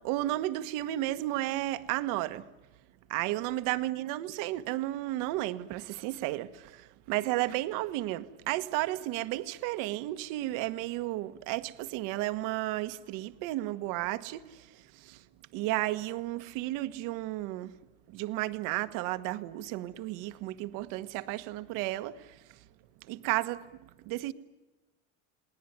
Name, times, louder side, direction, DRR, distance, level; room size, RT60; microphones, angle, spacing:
voice 1, 0.0-2.5 3.1-15.2 15.5-17.8 18.1-22.6 23.0-23.8 24.0-24.3, right 16 dB, 60° right, 1.4 m, -33 dB
29.5 x 19.5 x 9.5 m
supercardioid pair, 130°, 35 cm